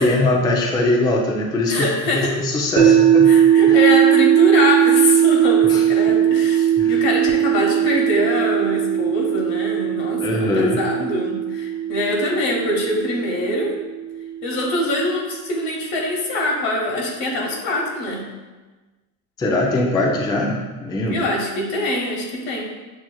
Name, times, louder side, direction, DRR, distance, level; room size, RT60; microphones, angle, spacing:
voice 1, 0.0-3.3 3.7-3.8 5.7-5.8 6.8-7.0 10.2-10.8 19.4-21.3, left 2 dB, 10° left, -1 dB, 0.3 m, -21 dB
voice 2, 1.7-2.3 2.8-2.9 3.2-13.7 14.4-18.2 21.1-22.7, left 1 dB, 80° left, -1 dB, 1.2 m, -23 dB
sound 1, 2.8-14.9, right 10 dB, 60° right, 0.7 m, -18 dB
6.0 x 2.9 x 2.3 m, 1.2 s
supercardioid pair, 100°, 50 cm